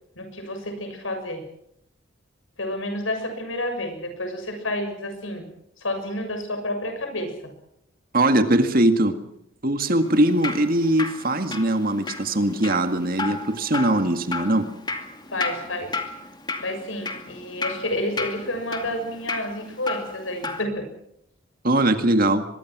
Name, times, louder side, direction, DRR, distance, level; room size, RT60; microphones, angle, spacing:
voice 1, 0.2-1.4 2.6-5.5 5.8-7.5 15.3-16.0 16.6-20.9, left 1 dB, 75° left, 6 dB, 7.0 m, -30 dB
voice 2, 8.1-9.2 9.6-14.7 21.6-22.5, right 1 dB, 45° right, 8 dB, 2.0 m, -21 dB
Drip, 10.0-20.6, left 3 dB, 20° left, 2.4 m, -34 dB
24.0 x 22.5 x 6.2 m, 0.76 s
head